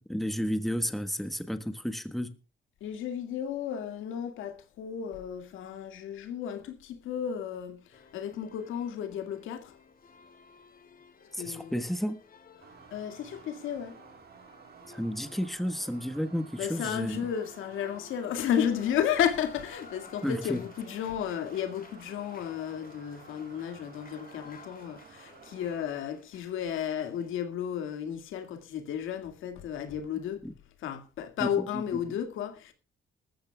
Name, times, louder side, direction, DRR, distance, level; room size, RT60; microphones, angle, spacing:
voice 1, 0.0-2.3 11.3-12.2 14.9-17.2 20.2-20.6 30.4-30.5 31.4-32.2, equal, ahead, 1.3 m, -32 dB
voice 2, 2.8-9.8 11.4-11.8 12.9-14.0 16.6-30.5 30.8-32.7, left 9 dB, 85° left, 2.1 m, -33 dB
sound 1, 7.9-27.3, left 5 dB, 45° left, 2.7 m, -54 dB
sound 2, 12.6-25.9, right 7 dB, 55° right, 1.7 m, -53 dB
20.0 x 14.0 x 2.3 m
cardioid pair, 90°, 20 cm